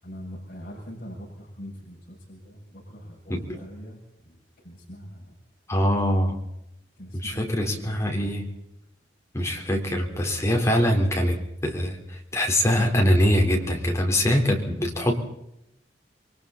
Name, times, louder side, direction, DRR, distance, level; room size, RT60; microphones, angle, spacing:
voice 1, 0.0-5.4 7.0-8.0, equal, 50° left, -3 dB, 7.3 m, -42 dB
voice 2, 5.7-6.4 7.2-8.5 9.3-15.1, equal, 15° left, 1 dB, 4.3 m, -23 dB
28.5 x 23.5 x 4.2 m, 0.80 s
head